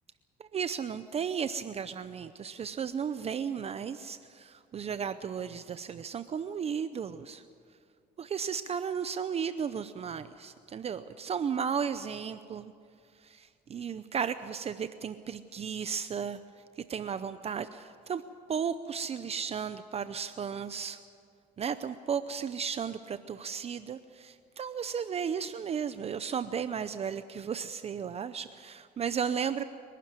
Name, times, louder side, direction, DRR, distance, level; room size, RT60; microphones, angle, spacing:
voice 1, 0.4-7.4 8.2-12.7 13.2-16.4 16.8-18.2 18.5-21.0 21.6-29.6, right 7 dB, 35° right, 12 dB, 0.7 m, -34 dB
25.0 x 12.0 x 9.7 m, 2.2 s
cardioid pair, 110°, 17 cm